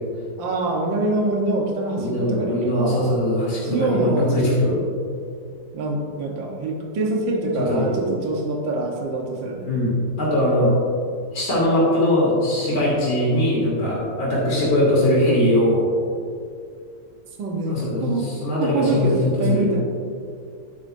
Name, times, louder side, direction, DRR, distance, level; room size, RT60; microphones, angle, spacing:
voice 1, 0.4-3.1 3.6-4.7 5.7-9.7 17.4-18.3 18.6-19.8, right 2 dB, 70° right, 0 dB, 1.9 m, -25 dB
voice 2, 1.9-4.8 7.6-8.0 9.6-10.7 11.3-15.9 17.7-19.7, left 1 dB, 85° left, -6 dB, 3.6 m, -21 dB
12.0 x 9.3 x 2.7 m, 2.3 s
omnidirectional pair, 2.1 m